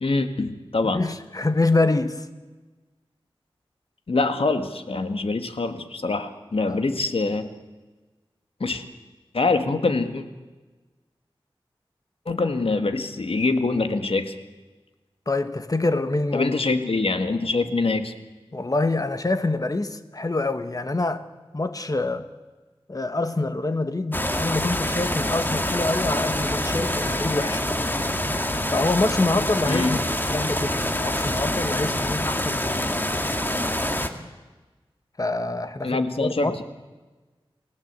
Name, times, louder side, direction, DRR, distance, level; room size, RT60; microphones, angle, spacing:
voice 1, 0.0-1.0 4.1-7.5 8.6-8.8 9.3-10.2 12.3-14.3 16.3-18.1 29.6-30.0 35.8-36.6, left 3 dB, 75° left, 1.8 m, -24 dB
voice 2, 0.9-2.3 6.7-6.8 15.3-16.5 18.5-21.3 21.5-22.3 22.9-27.6 28.7-30.0 30.3-32.9 35.2-36.6, left 2 dB, 40° left, 1.5 m, -25 dB
sound 1, 24.1-34.1, left 1 dB, 20° left, 2.0 m, -26 dB
29.5 x 17.5 x 8.3 m
wide cardioid pair, 65°, 10 cm